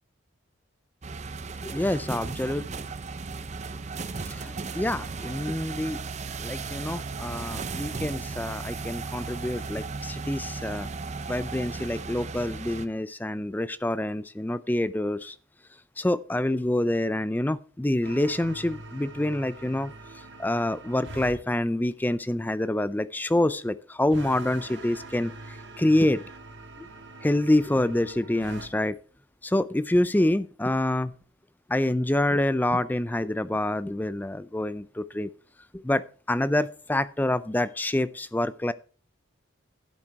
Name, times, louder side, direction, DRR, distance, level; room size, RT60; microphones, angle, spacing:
sound 1, 1.0-12.9, right 4 dB, 35° right, 0.6 m, -36 dB
voice 1, 1.6-2.7 4.2-6.0 6.4-10.9 11.3-15.4 16.0-19.9 20.4-26.2 26.8-26.9 27.2-29.0 29.4-31.1 31.7-35.3 35.7-38.7, left 1 dB, 10° left, 16 dB, 0.4 m, -27 dB
sound 2, 18.0-21.4 24.1-28.7, right 2 dB, 60° right, 1.5 m, -43 dB
11.5 x 7.9 x 4.6 m, 0.40 s
head